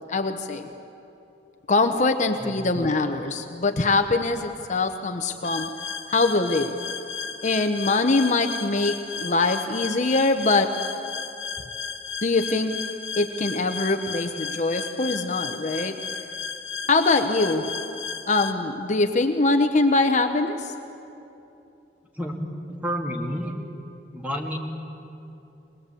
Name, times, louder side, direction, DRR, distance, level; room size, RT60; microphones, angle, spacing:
voice 1, 0.1-0.7 1.7-5.7 6.1-6.7 7.4-10.7 12.2-12.8 13.2-16.0 16.9-17.7 18.3-20.7, left 3 dB, 40° left, 6 dB, 0.9 m, -23 dB
sound 1, 5.4-18.5, left 6 dB, 65° left, 1.3 m, -34 dB
voice 2, 22.7-23.5 24.1-24.6, equal, 10° right, 1 dB, 2.3 m, -30 dB
21.5 x 21.0 x 8.4 m, 2.9 s
head